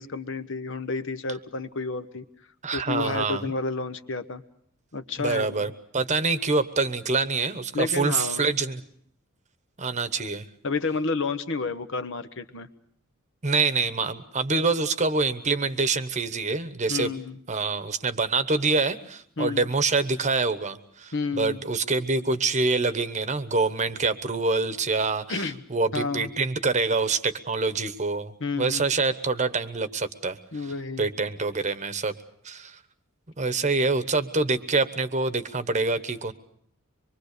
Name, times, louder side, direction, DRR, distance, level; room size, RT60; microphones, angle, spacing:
voice 1, 0.0-2.2 2.7-4.4 4.9-5.7 7.7-8.5 10.6-12.7 16.9-17.4 19.4-19.7 21.1-21.6 25.3-25.6 25.9-26.3 28.4-28.9 30.5-31.1, left 3 dB, 60° left, 10 dB, 1.1 m, -30 dB
voice 2, 2.6-3.5 5.2-8.8 9.8-10.4 13.4-17.1 17.5-30.7 31.0-32.1 32.4-32.8 33.4-36.3, right 3 dB, 30° right, 11 dB, 1.1 m, -26 dB
25.0 x 23.0 x 6.7 m, 0.64 s
head